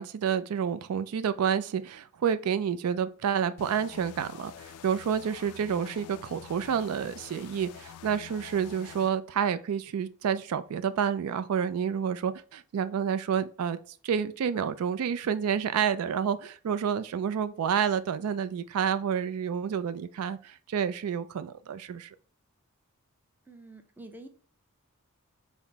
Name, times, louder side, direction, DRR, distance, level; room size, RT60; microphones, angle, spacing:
voice 1, 0.0-13.8 14.0-22.1, right 7 dB, 75° right, 0.3 m, -29 dB
sound 1, 3.6-9.1, left 9 dB, 80° left, 0.3 m, -47 dB
voice 2, 23.5-24.3, right 2 dB, 10° right, 0.5 m, -47 dB
5.6 x 2.0 x 4.4 m
head